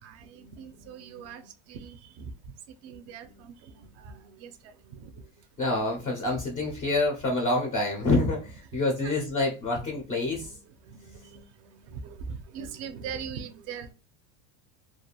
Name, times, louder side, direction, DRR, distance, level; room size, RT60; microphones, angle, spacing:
voice 1, 0.0-2.3 2.8-5.3 8.7-9.1 10.3-13.9, right 6 dB, 45° right, 0.4 m, -42 dB
voice 2, 5.6-10.5, left 2 dB, 20° left, 0.3 m, -27 dB
2.4 x 2.3 x 2.8 m
cardioid pair, 150°, 37 cm